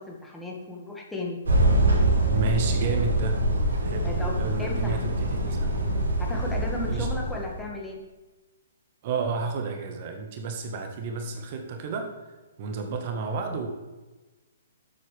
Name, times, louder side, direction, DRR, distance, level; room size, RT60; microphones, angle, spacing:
voice 1, 0.0-1.4 4.0-5.0 6.2-8.0, left 2 dB, 5° left, -2 dB, 1.7 m, -35 dB
sound 1, 1.4-7.7, right 1 dB, 70° right, 3.4 m, -24 dB
voice 2, 2.3-3.4 3.8-4.1 4.4-5.7 6.9-7.1 9.0-12.1 12.6-13.7, right 4 dB, 45° right, 5 dB, 1.4 m, -31 dB
12.0 x 7.8 x 3.4 m, 1.2 s
figure-of-eight pair, 125°, 0 cm